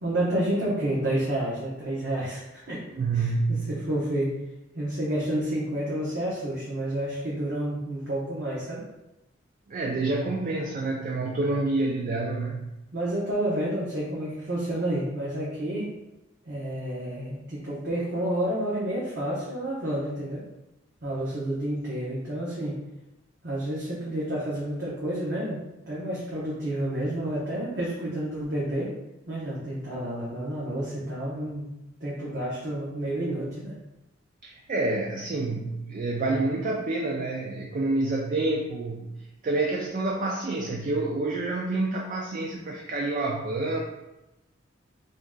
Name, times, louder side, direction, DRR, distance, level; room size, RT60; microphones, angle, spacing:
voice 1, 0.0-2.8 3.1-4.3 4.7-8.8 12.9-15.9 16.5-20.4 21.0-22.8 23.4-28.9 29.3-31.7 32.0-33.7, right 1 dB, 60° right, -7 dB, 0.8 m, -30 dB
voice 2, 2.9-3.8 9.7-12.7 34.4-43.8, right 2 dB, 40° right, 0 dB, 0.4 m, -28 dB
3.1 x 2.8 x 3.6 m, 0.97 s
head